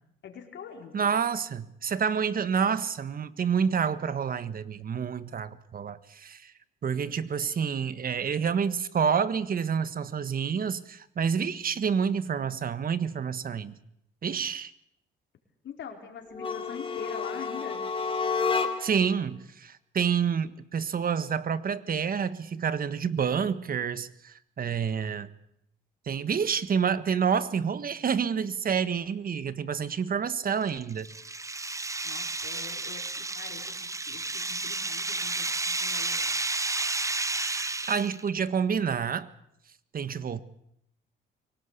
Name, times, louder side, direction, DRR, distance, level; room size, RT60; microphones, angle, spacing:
voice 1, 0.2-1.1 15.6-17.8 32.0-36.3, left 7 dB, 65° left, 4.6 m, -44 dB
voice 2, 0.9-6.5 6.8-13.8 14.2-14.7 18.8-25.3 26.1-31.1 37.4-39.3 39.9-40.4, right 7 dB, 45° right, 1.4 m, -28 dB
sound 1, 16.3-19.1, left 5 dB, 25° left, 2.8 m, -30 dB
sound 2, 30.5-38.3, right 3 dB, 15° right, 0.9 m, -32 dB
24.0 x 18.0 x 8.3 m
cardioid pair, 90°, 20 cm